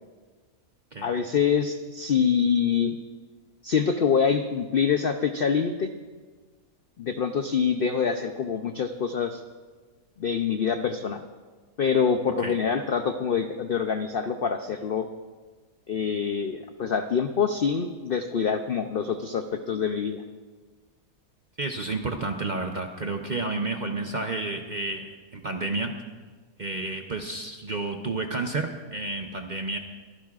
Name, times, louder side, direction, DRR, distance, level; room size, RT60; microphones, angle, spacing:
voice 1, 1.0-3.0 3.6-5.9 7.0-9.4 10.2-11.2 11.8-15.1 15.9-20.2, left 6 dB, 70° left, 7 dB, 0.5 m, -25 dB
voice 2, 21.6-25.9 26.6-29.8, right 3 dB, 45° right, 4 dB, 0.6 m, -31 dB
23.5 x 15.0 x 2.4 m, 1.4 s
omnidirectional pair, 1.7 m